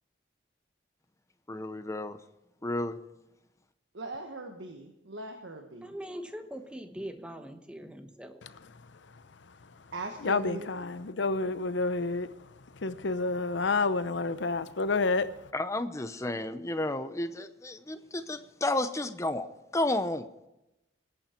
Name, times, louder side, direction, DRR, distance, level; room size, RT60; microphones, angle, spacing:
voice 1, 1.5-2.2 2.6-3.0 15.5-19.5 19.7-20.2, left 2 dB, 15° left, 0.7 m, -32 dB
voice 2, 3.9-5.9 9.9-10.7, right 2 dB, 90° right, 1.4 m, -40 dB
voice 3, 5.8-8.4, equal, 5° right, 1.1 m, -42 dB
voice 4, 10.2-12.3 12.8-15.3, left 3 dB, 75° left, 0.8 m, -29 dB
21.0 x 8.8 x 4.5 m
head